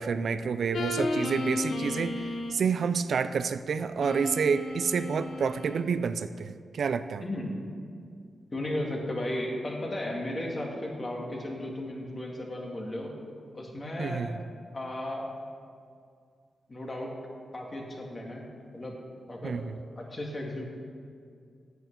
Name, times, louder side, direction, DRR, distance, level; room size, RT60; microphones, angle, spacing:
voice 1, 0.0-2.2 2.5-7.2 14.0-14.4 19.4-19.7, right 6 dB, 70° right, 12 dB, 0.4 m, -29 dB
sound 1, 0.7-2.7 4.0-5.8, left 2 dB, 70° left, 1.0 m, -33 dB
voice 2, 7.2-7.6 8.5-13.1 13.5-14.3 14.7-15.3 16.7-17.1 17.5-18.4 18.7-18.9 19.3-19.6 20.0-20.7, left 1 dB, 30° left, -1 dB, 2.0 m, -35 dB
9.2 x 8.1 x 6.7 m, 2.2 s
wide cardioid pair, 120°, 0 cm